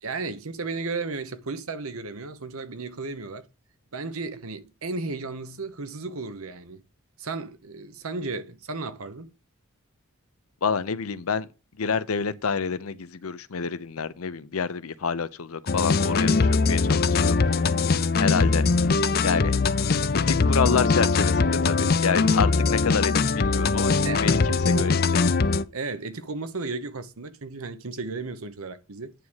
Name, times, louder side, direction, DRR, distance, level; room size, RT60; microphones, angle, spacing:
voice 1, 0.0-3.4 3.9-6.8 7.2-9.3 24.0-24.3 24.7-24.9 25.7-29.1, right 3 dB, 85° right, 1.1 m, -34 dB
voice 2, 10.6-11.5 11.8-17.6 18.2-18.7 19.2-19.5 20.1-25.2, left 5 dB, 85° left, 0.7 m, -28 dB
sound 1, 15.7-25.6, left 4 dB, 45° left, 0.5 m, -22 dB
9.3 x 3.6 x 6.3 m
head